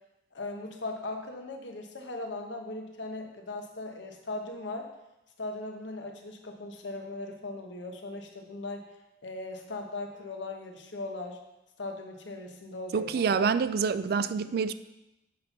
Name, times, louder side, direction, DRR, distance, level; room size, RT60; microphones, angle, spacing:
voice 1, 0.3-4.9 5.4-8.9 9.2-11.4 11.8-13.5 14.0-14.1, left 2 dB, 85° left, 3 dB, 1.1 m, -38 dB
voice 2, 12.9-14.7, right 5 dB, 55° right, 14 dB, 0.3 m, -27 dB
7.5 x 4.4 x 5.9 m, 0.92 s
head